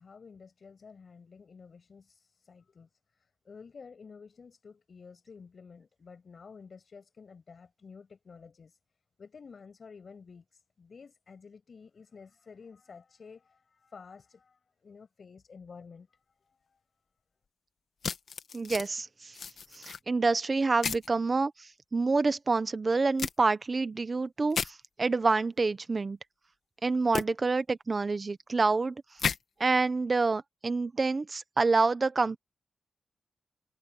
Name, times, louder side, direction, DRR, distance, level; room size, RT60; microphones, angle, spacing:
voice 1, 0.0-8.8 9.2-16.1 16.5-16.8, left 5 dB, 50° left, 6.4 m, -51 dB
sound 1, 18.0-18.9 19.3-20.0 20.8-21.1 23.2-23.3 24.5-24.7 27.1-27.2 29.2-29.4, left 6 dB, 65° left, 1.7 m, -32 dB
voice 2, 18.5-19.3 19.7-26.2 26.8-29.0 29.6-32.4, right 3 dB, 35° right, 1.0 m, -27 dB
wide cardioid pair, 135°, 0 cm